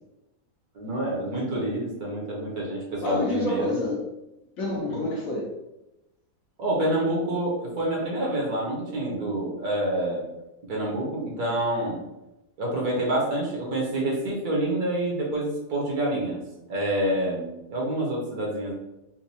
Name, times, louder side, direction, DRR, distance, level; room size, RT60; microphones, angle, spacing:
voice 1, 0.7-3.8 4.9-5.1 6.6-10.3 10.7-12.0 12.6-16.4 16.7-18.7, right 1 dB, 65° right, -3 dB, 1.5 m, -27 dB
voice 2, 3.0-4.1 4.6-5.5, left 2 dB, 60° left, -3 dB, 1.1 m, -28 dB
4.3 x 2.3 x 2.7 m, 0.93 s
omnidirectional pair, 1.8 m